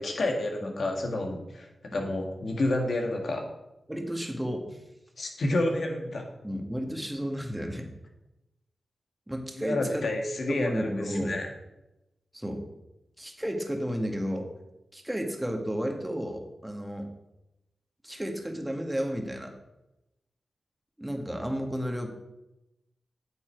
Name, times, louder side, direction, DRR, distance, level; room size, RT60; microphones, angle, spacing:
voice 1, 0.0-3.5 5.2-6.3 9.6-11.5, left 2 dB, 70° left, 2 dB, 1.8 m, -29 dB
voice 2, 3.9-4.8 6.4-7.9 9.3-10.1 10.5-11.4 12.3-12.6 13.2-14.5 14.9-17.1 18.0-19.6 21.0-22.1, equal, 10° right, 4 dB, 1.8 m, -32 dB
9.0 x 7.3 x 4.6 m, 0.94 s
cardioid pair, 50°, 0 cm